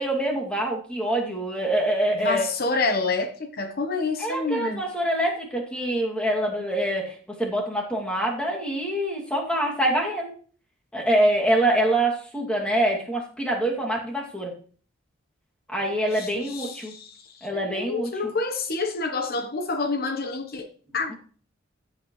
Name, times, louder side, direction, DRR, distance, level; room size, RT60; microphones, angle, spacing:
voice 1, 0.0-2.5 4.2-7.1 7.4-10.3 10.9-14.5 15.7-16.9 17.4-18.1, right 1 dB, 5° left, 2.5 m, -25 dB
voice 2, 2.2-4.8 16.1-21.1, left 3 dB, 50° left, 1.1 m, -28 dB
15.0 x 8.4 x 3.2 m
head